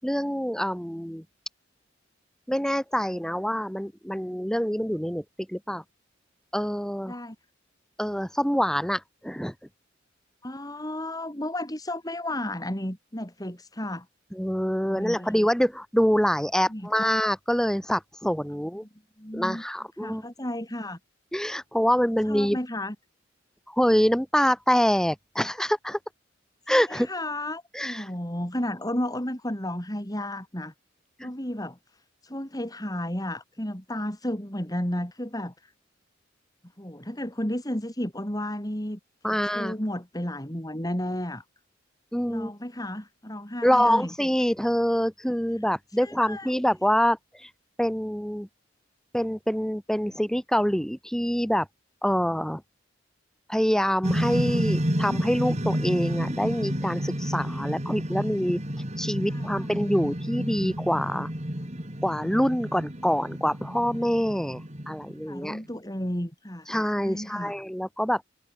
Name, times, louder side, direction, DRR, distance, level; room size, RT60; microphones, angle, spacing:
voice 1, 0.0-1.3 2.5-5.8 6.5-7.2 8.0-9.5 14.3-18.9 19.3-20.2 21.3-22.6 23.7-26.0 26.7-27.1 27.7-28.1 31.2-31.3 39.2-39.8 42.1-42.5 43.6-47.5 47.8-48.5 49.1-51.7 52.0-52.6 53.5-58.6 59.0-61.3 62.0-64.6 64.9-65.6 66.7-68.2, equal, 5° left, 7.0 m, -25 dB
voice 2, 10.4-14.0 14.9-15.3 16.7-17.1 19.2-19.6 20.0-21.0 22.3-22.9 26.7-30.7 31.2-31.8 32.2-35.7 36.8-39.0 39.3-41.4 42.3-44.1 46.0-46.5 59.3-59.6 65.3-66.7 67.0-67.5, left 1 dB, 20° left, 4.7 m, -33 dB
sound 1, 54.0-65.5, equal, 35° right, 5.1 m, -30 dB
head